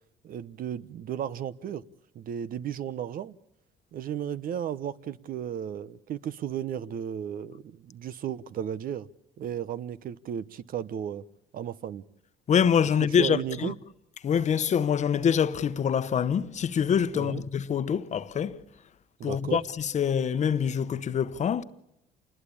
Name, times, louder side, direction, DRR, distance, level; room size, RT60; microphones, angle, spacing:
voice 1, 0.2-1.8 2.1-3.3 3.9-9.1 9.4-11.2 11.5-12.0 13.2-13.8 17.1-17.4 19.2-19.6, right 9 dB, 55° right, 1.0 m, -34 dB
voice 2, 12.5-13.7 14.2-18.6 19.2-21.6, left 7 dB, 45° left, 1.0 m, -25 dB
27.5 x 20.5 x 8.5 m
cardioid pair, 110°, 17 cm